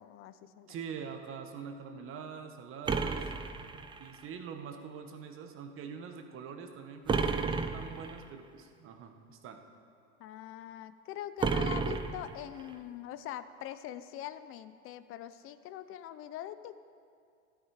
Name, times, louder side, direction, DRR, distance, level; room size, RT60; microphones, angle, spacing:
voice 1, 0.0-0.8 10.2-16.8, left 11 dB, 40° left, 13 dB, 0.6 m, -43 dB
voice 2, 0.7-3.3 4.0-9.6, right 6 dB, 40° right, 6 dB, 1.3 m, -44 dB
sound 1, 2.9-4.2 7.1-8.2 11.4-12.7, right 5 dB, 15° right, 0.5 m, -32 dB
12.5 x 12.5 x 4.9 m, 2.3 s
supercardioid pair, 120°, 33 cm